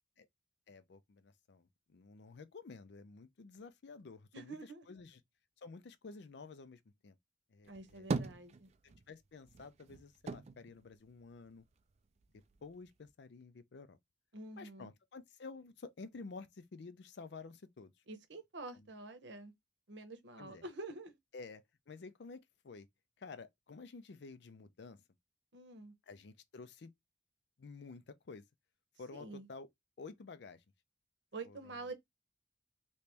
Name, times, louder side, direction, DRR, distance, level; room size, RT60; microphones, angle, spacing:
voice 1, 0.7-5.2 5.6-7.2 7.5-8.1 8.8-11.6 12.6-14.0 14.6-17.9 18.7-18.9 20.4-20.6 21.3-22.9 23.2-25.0 26.1-26.9 27.6-28.4 29.0-29.7 30.0-30.6 31.4-31.8, left 4 dB, 65° left, 0.5 m, -51 dB
voice 2, 4.3-4.8 7.7-8.7 14.3-14.9 18.1-19.5 19.9-21.2 25.5-25.9 29.1-29.5 31.3-31.9, right 3 dB, 70° right, 0.8 m, -47 dB
sound 1, 7.6-9.1 9.4-11.8 12.2-13.1, right 3 dB, 35° right, 0.3 m, -41 dB
3.1 x 2.8 x 3.4 m
head